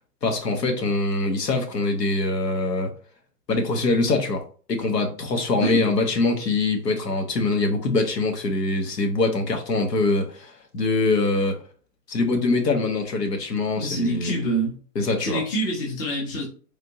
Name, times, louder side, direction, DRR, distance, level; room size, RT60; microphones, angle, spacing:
voice 1, 0.2-2.9 3.5-4.4 4.7-11.6 12.1-14.4 14.9-15.4, left 2 dB, 85° left, 4 dB, 1.1 m, -23 dB
voice 2, 13.7-14.8 15.2-16.4, right 1 dB, 15° left, -2 dB, 0.4 m, -26 dB
3.5 x 2.5 x 2.8 m, 0.41 s
hypercardioid pair, 130°, 48 cm